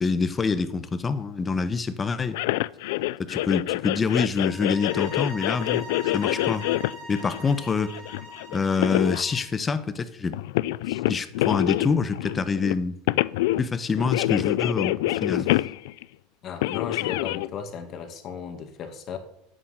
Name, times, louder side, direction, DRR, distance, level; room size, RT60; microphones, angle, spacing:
voice 1, 0.0-2.4 3.2-5.8 6.1-6.7 7.1-8.0 8.5-10.4 10.9-12.9 13.6-15.5, left 5 dB, 20° left, 1.2 m, -26 dB
sound 1, 2.3-9.2 10.3-12.7 13.1-13.7 13.9-16.0 16.6-17.5, left 17 dB, 75° left, 0.4 m, -26 dB
sound 2, 4.4-9.5, right 1 dB, 35° right, 4.1 m, -42 dB
voice 2, 16.4-19.2, left 7 dB, 35° left, 2.4 m, -35 dB
11.0 x 9.1 x 9.6 m
supercardioid pair, 140°, 0 cm